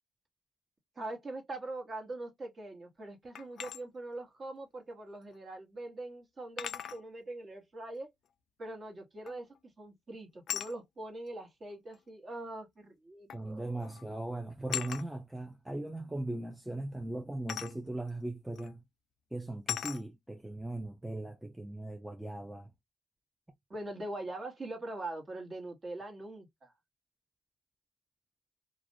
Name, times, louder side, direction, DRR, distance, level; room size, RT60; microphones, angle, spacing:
voice 1, 1.0-8.1 8.6-9.5 9.8-13.9 23.7-26.7, right 2 dB, 35° right, 1.1 m, -42 dB
sound 1, 3.3-3.8 5.3-5.4 6.6-7.0 9.3-9.6 10.5-10.7 11.9-12.0 13.3-13.5 13.8-14.1 14.7-15.1 17.5-17.8 18.6-18.7 19.7-20.0, left 10 dB, 65° left, 0.3 m, -38 dB
voice 2, 13.3-18.8 19.3-22.7, right 2 dB, 5° right, 0.4 m, -39 dB
2.4 x 2.0 x 2.5 m
cardioid pair, 90°, 0 cm